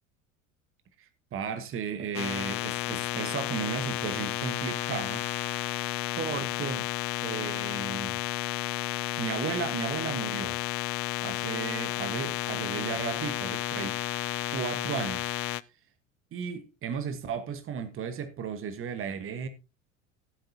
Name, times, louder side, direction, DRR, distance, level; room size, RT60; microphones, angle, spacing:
voice 1, 1.0-5.3 6.2-6.9 7.2-8.2 9.2-10.6 11.2-14.0 14.5-15.3 16.3-19.5, right 6 dB, 30° right, 1.4 m, -35 dB
sound 1, 2.1-15.6, left 19 dB, 35° left, 0.4 m, -32 dB
16.0 x 7.9 x 2.8 m
figure-of-eight pair, 70°, 40 cm